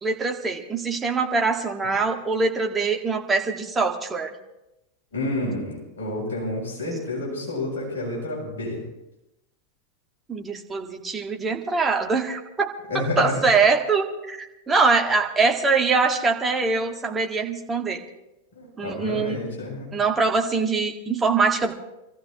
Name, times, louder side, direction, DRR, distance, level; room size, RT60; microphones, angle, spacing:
voice 1, 0.0-4.3 10.3-12.7 12.9-18.0 18.8-19.4 19.9-21.7, right 4 dB, 15° right, 2 dB, 1.8 m, -23 dB
voice 2, 5.1-8.8 12.9-13.5 18.5-19.9, left 1 dB, 60° left, -4 dB, 7.2 m, -29 dB
26.5 x 14.5 x 3.0 m, 0.92 s
figure-of-eight pair, 90°, 0 cm